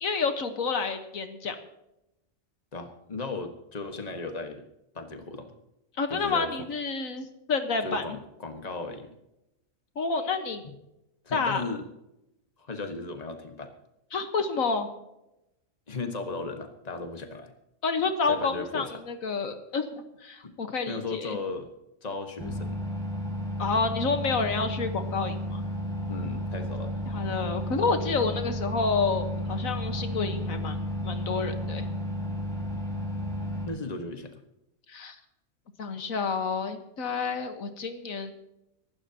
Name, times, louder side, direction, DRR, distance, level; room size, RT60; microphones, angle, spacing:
voice 1, 0.0-1.5 6.0-8.2 9.9-10.6 11.3-11.6 14.1-14.9 17.8-19.9 20.2-21.4 23.6-25.6 27.1-31.8 34.9-35.1 35.8-38.3, left 4 dB, 80° left, 7 dB, 1.7 m, -29 dB
voice 2, 2.7-4.6 4.9-5.5 6.1-6.7 7.8-9.1 10.6-10.7 11.2-11.8 12.6-13.7 15.9-17.5 18.3-19.0 20.4-20.5 20.9-21.7 22.0-22.8 26.1-26.9 33.6-34.3, left 3 dB, 30° left, 5 dB, 1.6 m, -36 dB
sound 1, 22.4-33.7, equal, 5° left, 4.8 m, -32 dB
24.0 x 12.5 x 2.9 m, 0.88 s
omnidirectional pair, 1.4 m